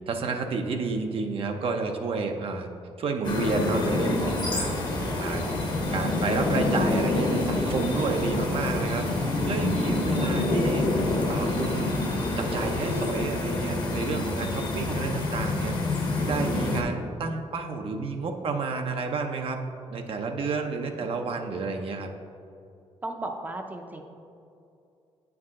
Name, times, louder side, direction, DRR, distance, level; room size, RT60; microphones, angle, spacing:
voice 1, 0.1-2.7 3.0-5.4 5.9-9.1 9.4-10.9 11.2-12.1 12.4-19.6 19.9-22.1, right 4 dB, 55° right, 4 dB, 0.6 m, -31 dB
sound 1, 3.2-16.8, left 2 dB, 40° left, 1.1 m, -27 dB
sound 2, 4.3-13.1, right 1 dB, 75° right, 1.5 m, -39 dB
voice 2, 5.0-5.5 14.9-15.0 21.0-21.2 23.0-24.0, right 2 dB, 15° right, 3 dB, 0.6 m, -37 dB
8.4 x 4.7 x 3.6 m, 2.5 s
cardioid pair, 105°, 11 cm